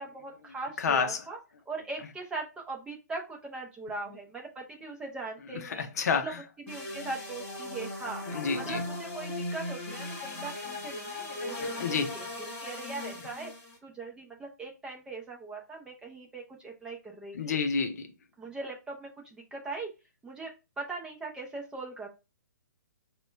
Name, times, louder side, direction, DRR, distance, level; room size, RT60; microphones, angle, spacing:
voice 1, 0.0-1.4 1.7-5.9 6.2-6.3 6.6-13.5 13.8-17.6 18.4-19.9 20.2-22.1, right 3 dB, 10° right, 0.7 m, -40 dB
voice 2, 0.8-1.2 5.7-6.3 8.3-8.8 11.6-12.1 17.3-18.1, left 5 dB, 60° left, 0.7 m, -29 dB
sound 1, 6.7-13.8, left 2 dB, 25° left, 1.5 m, -38 dB
5.0 x 2.3 x 3.3 m
hypercardioid pair, 145°, 10 cm